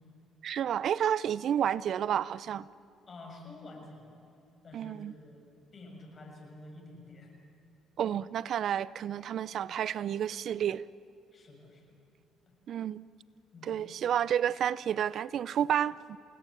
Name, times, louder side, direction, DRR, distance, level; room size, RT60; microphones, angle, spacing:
voice 1, 0.4-2.6 4.7-5.1 8.0-10.8 12.7-13.0 13.6-16.2, right 9 dB, 60° right, 19 dB, 0.5 m, -30 dB
voice 2, 3.1-4.2 4.6-5.4 5.7-7.3 11.3-12.0 13.5-13.7, left 2 dB, 40° left, 2 dB, 7.1 m, -49 dB
29.5 x 18.5 x 8.7 m, 2.8 s
cardioid pair, 90°, 0 cm